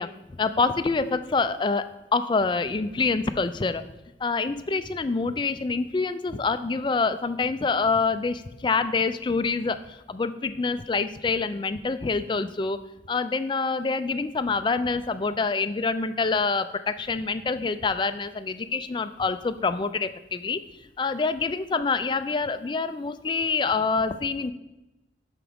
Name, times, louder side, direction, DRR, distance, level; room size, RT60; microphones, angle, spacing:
voice 1, 0.0-3.8 4.2-12.8 13.1-20.6 21.0-24.5, left 4 dB, 25° left, 11 dB, 0.3 m, -26 dB
12.0 x 4.8 x 3.5 m, 0.98 s
head